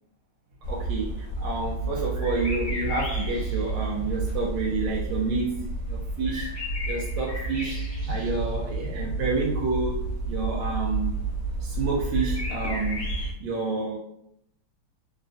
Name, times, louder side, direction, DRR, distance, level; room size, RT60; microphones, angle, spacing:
sound 1, 0.6-13.3, right 2 dB, 45° left, 1.3 m, -30 dB
voice 1, 0.7-6.5 6.9-7.8 8.1-11.1 11.6-13.1 13.4-14.0, right 3 dB, 75° right, -4 dB, 1.2 m, -29 dB
3.8 x 2.2 x 2.6 m, 0.73 s
omnidirectional pair, 2.3 m